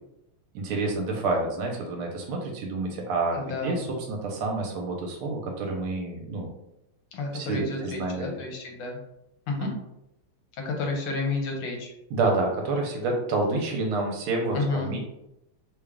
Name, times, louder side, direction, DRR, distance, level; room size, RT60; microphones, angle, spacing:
voice 1, 0.5-6.5 7.3-8.4 9.6-9.7 12.1-15.0, right 3 dB, 80° right, 1 dB, 1.6 m, -28 dB
voice 2, 3.3-3.8 7.1-9.0 9.5-9.7 10.5-11.9 14.5-15.0, left 3 dB, 75° left, 1 dB, 1.5 m, -31 dB
3.6 x 2.3 x 3.4 m, 0.84 s
omnidirectional pair, 2.4 m